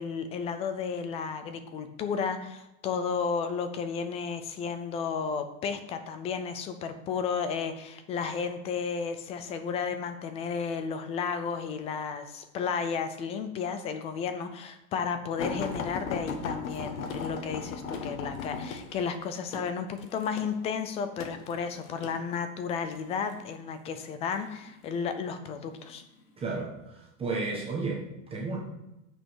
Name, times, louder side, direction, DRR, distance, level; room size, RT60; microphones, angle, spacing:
voice 1, 0.0-26.0, left 6 dB, 15° left, 9 dB, 0.4 m, -33 dB
sound 1, 15.4-22.2 23.0-23.4 24.3-25.0 25.7-25.9 26.3-26.4, left 5 dB, 85° left, 1.7 m, -37 dB
voice 2, 26.4-28.0 28.3-28.6, right 3 dB, 15° right, -2 dB, 1.2 m, -32 dB
9.1 x 5.4 x 6.2 m, 0.94 s
supercardioid pair, 160°, 40 cm